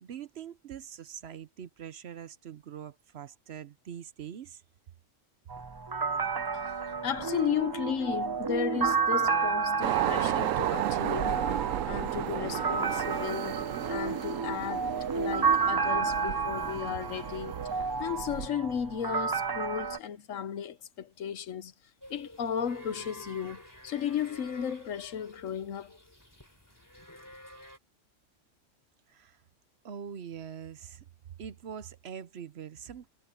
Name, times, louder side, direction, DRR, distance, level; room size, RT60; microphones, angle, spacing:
voice 1, 0.0-4.6 29.1-29.4 29.8-31.1 31.4-33.1, right 8 dB, 60° right, 0.9 m, -43 dB
sound 1, 5.5-20.0, right 5 dB, 35° right, 0.3 m, -31 dB
voice 2, 6.5-11.4 11.8-17.7 18.0-21.7 22.1-25.9, left 8 dB, 85° left, 1.3 m, -34 dB
sound 2, 9.8-18.5, right 12 dB, 85° right, 1.0 m, -33 dB
sound 3, 22.0-27.8, equal, 15° left, 3.5 m, -50 dB
omnidirectional pair, 1.3 m